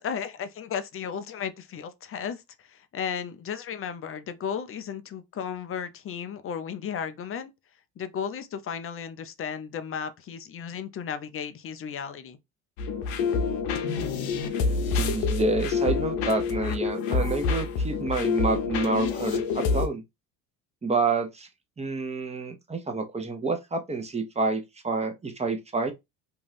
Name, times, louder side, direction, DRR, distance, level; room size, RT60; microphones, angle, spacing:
voice 1, 0.0-7.5 8.0-12.4, left 7 dB, 35° left, 0.5 m, -34 dB
sound 1, 12.8-19.9, left 5 dB, 70° left, 0.7 m, -27 dB
voice 2, 14.6-20.0 20.8-21.5 21.8-25.9, right 3 dB, 15° right, 0.8 m, -28 dB
2.6 x 2.3 x 3.3 m
supercardioid pair, 75°, 40 cm